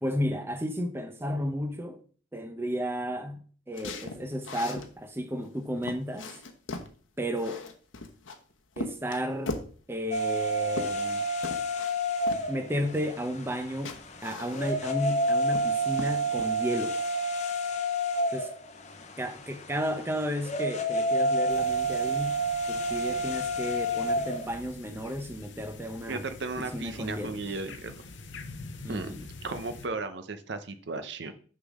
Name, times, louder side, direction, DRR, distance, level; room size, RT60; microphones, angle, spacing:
voice 1, 0.0-2.0 2.3-6.4 7.2-7.6 8.8-9.6 9.9-11.2 12.5-17.0 18.3-18.5 19.2-26.3 26.6-27.4 28.8-29.2, equal, 10° right, 0.6 m, -33 dB
sound 1, 3.7-4.9 5.4-5.5 5.8-6.9 7.4-8.4 8.8-9.8 10.3-11.2 11.4-11.9 12.3-12.5 13.5-13.6 13.9-14.9 15.3-15.7 16.0-16.5, left 3 dB, 85° left, 1.0 m, -38 dB
sound 2, 10.1-24.6, right 1 dB, 35° left, 0.8 m, -30 dB
sound 3, 21.5-29.9, left 3 dB, 70° left, 0.8 m, -46 dB
voice 2, 26.1-27.9 28.9-31.3, right 3 dB, 60° right, 0.7 m, -35 dB
6.6 x 3.8 x 6.2 m
head